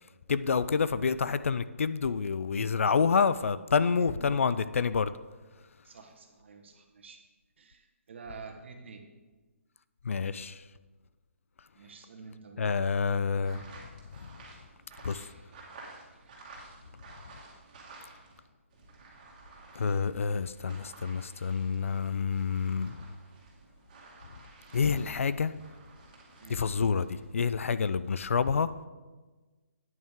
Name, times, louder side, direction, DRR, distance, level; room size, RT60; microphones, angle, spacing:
voice 1, 0.3-5.1 10.0-10.6 12.6-13.6 14.2-14.3 15.0-15.3 19.8-23.1 24.7-25.5 26.5-28.7, left 5 dB, 70° left, 0.4 m, -28 dB
voice 2, 3.9-4.4 5.8-7.2 7.6-9.0 11.7-12.7 15.2-15.6 16.1-16.3 26.4-26.7, right 4 dB, 55° right, 1.5 m, -48 dB
sound 1, 13.4-18.4 18.7-27.3, right 3 dB, 30° right, 2.3 m, -53 dB
9.3 x 8.7 x 3.7 m
hypercardioid pair, 160°, 7 cm